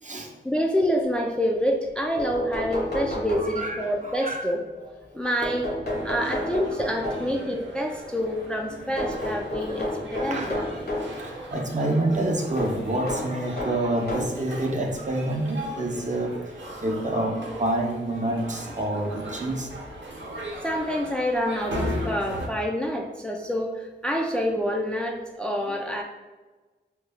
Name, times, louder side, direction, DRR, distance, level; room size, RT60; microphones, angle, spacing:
voice 1, 0.4-4.6 5.1-5.7 6.0-10.6 20.6-26.0, equal, 5° left, 1 dB, 0.4 m, -27 dB
sound 1, 1.9-2.0 2.2-3.9 5.4-7.5 9.0-11.2 12.6-14.4 15.3-15.4 16.7-16.8 17.2-17.3, left 1 dB, 55° left, 1.0 m, -31 dB
voice 2, 3.4-4.5 4.8-4.9 9.1-9.3 9.7-10.7 11.2-16.3 16.8-19.7 25.7-25.8, right 1 dB, 40° right, 1 dB, 0.6 m, -28 dB
sound 2, 5.9-22.5, right 1 dB, 75° right, 0.8 m, -37 dB
3.2 x 2.3 x 3.3 m, 1.3 s
wide cardioid pair, 65°, 19 cm